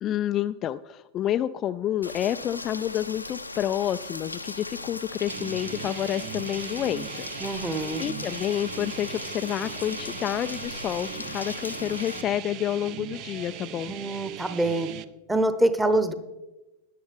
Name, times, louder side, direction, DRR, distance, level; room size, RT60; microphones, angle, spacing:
voice 1, 0.0-7.5 8.0-13.9, left 11 dB, 30° left, 10 dB, 0.3 m, -29 dB
Rain, 2.0-12.2, left 2 dB, 85° left, 0.6 m, -38 dB
sound 1, 5.3-15.0, right 11 dB, 40° right, 0.6 m, -39 dB
voice 2, 7.4-8.0 13.9-14.9 15.3-16.1, right 1 dB, 5° right, 9 dB, 1.1 m, -25 dB
17.5 x 11.0 x 3.5 m, 1.1 s
figure-of-eight pair, 90°, 0 cm